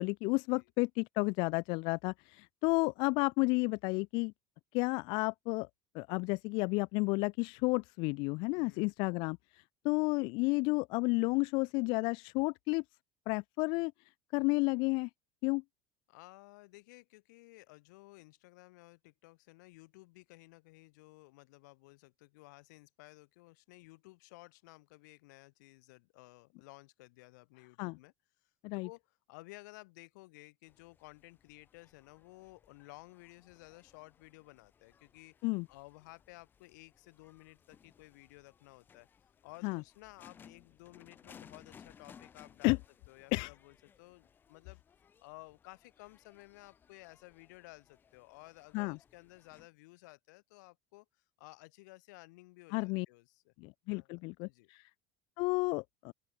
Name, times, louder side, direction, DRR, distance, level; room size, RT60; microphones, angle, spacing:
voice 1, 0.0-4.3 4.7-5.7 5.9-12.8 13.3-13.9 14.3-15.1 15.4-15.6 27.8-28.0 28.6-28.9 35.4-35.7 39.6-39.8 42.6-42.8 43.3-43.5 48.7-49.0 52.7-53.1 53.6-54.9 55.4-56.1, left 28 dB, 55° left, 0.6 m, -32 dB
voice 2, 8.5-8.9 16.1-28.1 28.4-28.5 28.8-35.4 35.7-39.1 39.4-42.8 43.1-44.8 45.2-51.0 51.4-53.5 53.9-54.7, left 23 dB, 90° left, 4.9 m, -55 dB
sound 1, 30.7-49.7, left 7 dB, 20° left, 4.2 m, -62 dB
open air
cardioid pair, 170°, 9 cm